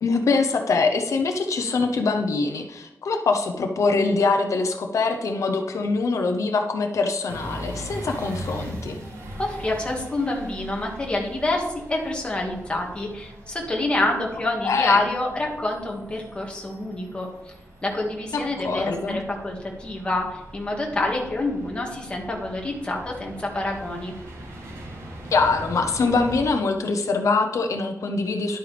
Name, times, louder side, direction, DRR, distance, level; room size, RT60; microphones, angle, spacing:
voice 1, 0.0-9.0 14.6-15.0 18.3-19.2 25.3-28.6, left 4 dB, 75° left, 5 dB, 0.8 m, -23 dB
sound 1, 7.3-26.4, right 1 dB, 90° right, 3.2 m, -40 dB
voice 2, 9.4-17.5 17.8-24.1, left 2 dB, 20° left, -1 dB, 1.9 m, -27 dB
11.5 x 8.8 x 3.4 m, 0.97 s
wide cardioid pair, 170°, 5 cm